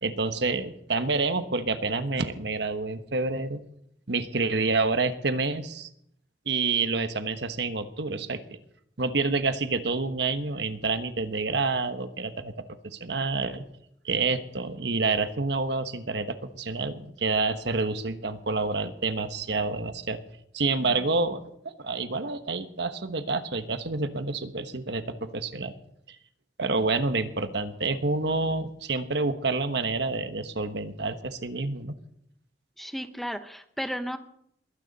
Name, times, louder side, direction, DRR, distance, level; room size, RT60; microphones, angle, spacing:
voice 1, 0.0-3.6 4.1-5.9 6.5-8.4 9.0-12.5 12.8-13.6 14.0-20.2 20.5-25.7 26.1-26.2 26.6-31.9, right 3 dB, 70° right, 9 dB, 1.2 m, -28 dB
voice 2, 32.8-34.2, equal, ahead, 9 dB, 0.9 m, -34 dB
21.5 x 16.5 x 4.1 m, 0.72 s
head